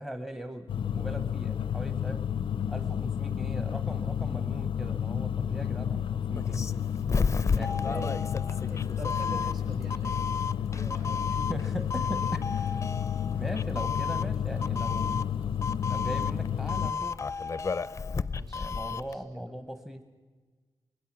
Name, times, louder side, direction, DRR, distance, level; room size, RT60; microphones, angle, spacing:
voice 1, 0.0-2.2 2.7-6.7 7.5-8.0 11.5-12.8 13.3-15.3 15.9-17.2 18.5-20.0, equal, 5° right, 7 dB, 0.9 m, -39 dB
sound 1, 0.7-16.9, left 9 dB, 90° left, 0.6 m, -31 dB
sound 2, 2.4-15.7, right 2 dB, 75° right, 3.1 m, -56 dB
Doorbell, 6.4-19.2, left 5 dB, 35° left, 0.5 m, -33 dB
voice 2, 7.6-10.2 10.7-11.4 18.3-19.4, right 2 dB, 55° right, 3 dB, 4.9 m, -44 dB
24.5 x 20.0 x 6.0 m, 1.4 s
wide cardioid pair, 135°, 9 cm